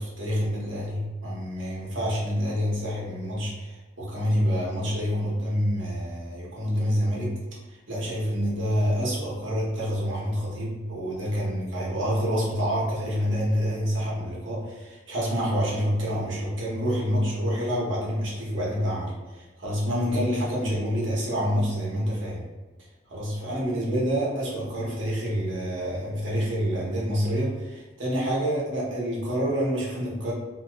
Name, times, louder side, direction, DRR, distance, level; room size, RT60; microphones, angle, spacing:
voice 1, 0.0-7.3 7.9-22.4 23.1-30.3, equal, 85° right, -5 dB, 1.1 m, -27 dB
2.9 x 2.4 x 3.0 m, 1.3 s
head